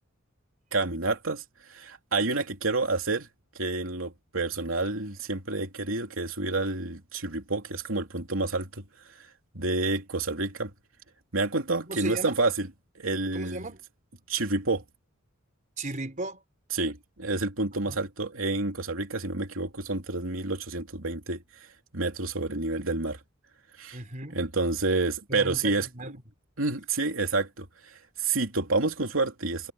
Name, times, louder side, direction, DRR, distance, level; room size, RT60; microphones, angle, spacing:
voice 1, 0.7-3.3 3.6-8.8 9.1-9.3 9.5-10.7 11.3-12.7 12.9-13.6 14.3-14.8 16.7-21.4 21.9-23.2 23.8-24.0 24.3-25.9 26.6-29.7, right 3 dB, 80° right, 3.2 m, -29 dB
voice 2, 11.9-12.4 13.3-13.8 15.8-16.4 17.8-18.0 23.9-24.4 25.3-26.1, right 2 dB, 40° right, 4.3 m, -36 dB
head